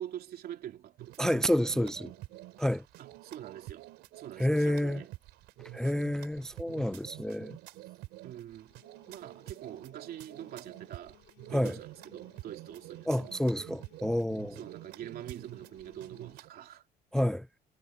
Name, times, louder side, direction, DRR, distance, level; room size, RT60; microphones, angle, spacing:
voice 1, 0.0-2.1 3.0-5.1 8.2-8.8 9.1-11.2 11.5-13.4 14.6-16.8, right 11 dB, 65° right, 2.9 m, -45 dB
sound 1, 1.0-16.5, right 18 dB, 90° right, 3.7 m, -49 dB
voice 2, 1.2-2.1 2.6-2.8 4.4-5.0 5.7-7.6 11.5-11.8 13.1-14.6 17.1-17.5, equal, 5° left, 0.4 m, -29 dB
sound 2, 8.5-16.4, left 16 dB, 80° left, 4.2 m, -62 dB
cardioid pair, 110°, 17 cm